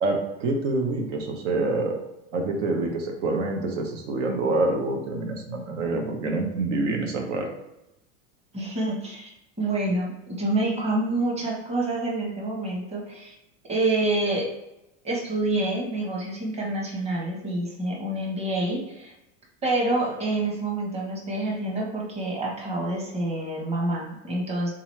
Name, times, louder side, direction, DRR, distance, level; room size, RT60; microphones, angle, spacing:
voice 1, 0.0-2.0 2.3-7.5, right 2 dB, 90° right, 2 dB, 0.9 m, -26 dB
voice 2, 8.5-9.3 9.6-13.3 13.7-14.5 15.0-19.1 19.6-24.7, right 2 dB, 20° right, -2 dB, 0.9 m, -27 dB
3.7 x 2.9 x 3.1 m, 0.90 s
supercardioid pair, 120°, 35 cm